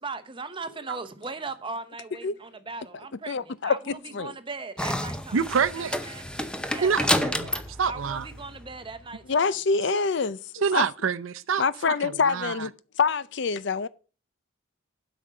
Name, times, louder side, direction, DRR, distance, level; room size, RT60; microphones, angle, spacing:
voice 1, 0.0-5.5 5.8-6.3 6.7-7.0 7.5-9.5, right 3 dB, 25° right, 0.9 m, -38 dB
voice 2, 3.3-4.3 9.3-10.9 11.6-13.9, left 5 dB, 60° left, 0.5 m, -26 dB
sound 1, 4.8-9.1, left 1 dB, 5° left, 0.7 m, -30 dB
voice 3, 5.3-6.0 6.8-8.3 9.9-10.0 10.6-12.5, right 6 dB, 80° right, 0.6 m, -27 dB
8.1 x 5.1 x 7.5 m
head